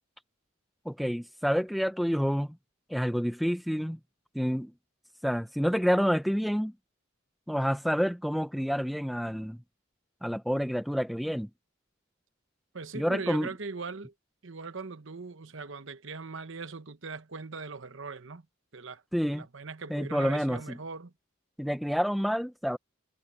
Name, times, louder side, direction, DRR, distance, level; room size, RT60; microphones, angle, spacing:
voice 1, 0.9-2.6 2.9-4.0 4.3-4.7 5.2-6.7 7.5-9.6 10.2-11.5 12.9-13.5 19.1-19.5 19.9-20.8 21.6-22.8, equal, ahead, 0.7 m, -28 dB
voice 2, 12.7-14.1 14.4-18.5 18.7-21.1, right 4 dB, 65° right, 1.0 m, -40 dB
head